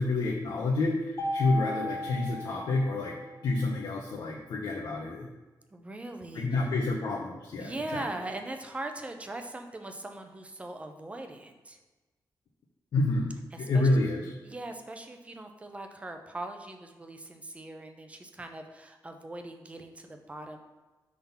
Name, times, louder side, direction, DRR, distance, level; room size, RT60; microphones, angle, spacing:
voice 1, 0.0-3.2 3.4-5.3 6.3-8.0 12.9-13.3 13.6-14.3, left 2 dB, 80° left, -3 dB, 0.8 m, -28 dB
Mallet percussion, 1.2-3.4, left 1 dB, 35° left, 0.6 m, -35 dB
voice 2, 5.7-6.5 7.6-11.8 13.5-13.9 14.4-20.6, right 2 dB, 15° right, 5 dB, 0.5 m, -40 dB
5.8 x 3.7 x 5.6 m, 1.2 s
wide cardioid pair, 180°, 7 cm